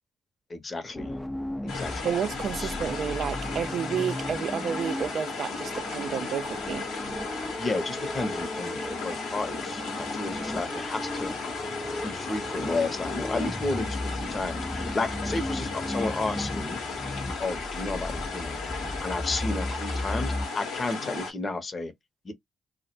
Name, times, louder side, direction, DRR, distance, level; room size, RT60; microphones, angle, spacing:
voice 1, 0.5-1.2 1.6-2.1 2.5-2.8 7.6-11.3 12.0-16.8 17.4-18.6 19.0-21.9 22.2-22.3, left 3 dB, 45° left, 0.7 m, -32 dB
sound 1, 0.9-20.5, left 1 dB, 15° left, 0.4 m, -36 dB
sound 2, 1.7-21.3, left 4 dB, 80° left, 0.7 m, -35 dB
voice 2, 2.0-6.9, right 7 dB, 65° right, 0.3 m, -30 dB
2.0 x 2.0 x 2.9 m
hypercardioid pair, 45°, 0 cm